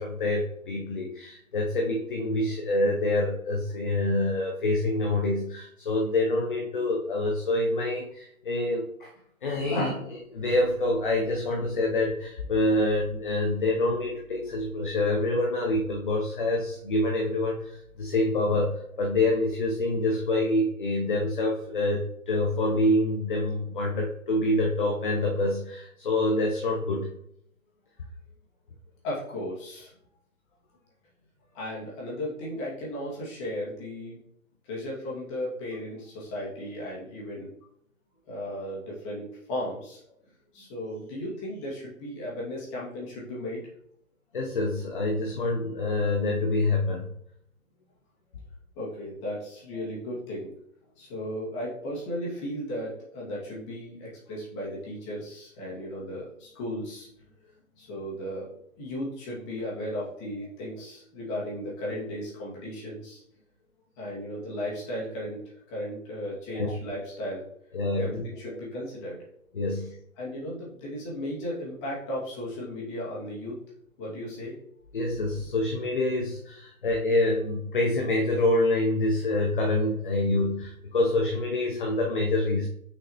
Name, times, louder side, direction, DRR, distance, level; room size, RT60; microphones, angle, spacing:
voice 1, 0.0-9.1 9.4-27.1 44.3-47.1 66.5-66.7 67.7-68.6 69.5-69.9 74.9-82.7, left 2 dB, 35° left, 1 dB, 0.8 m, -26 dB
voice 2, 29.0-29.9 31.5-34.2 34.6-37.5 38.3-40.0 40.5-43.6 48.8-50.5 51.0-57.1 57.8-58.5 58.8-63.2 64.0-65.4 65.7-67.4 68.0-69.2 70.2-73.6 74.0-74.5, left 1 dB, 20° left, -6 dB, 2.3 m, -35 dB
6.5 x 5.5 x 3.0 m, 0.72 s
figure-of-eight pair, 135°, 43 cm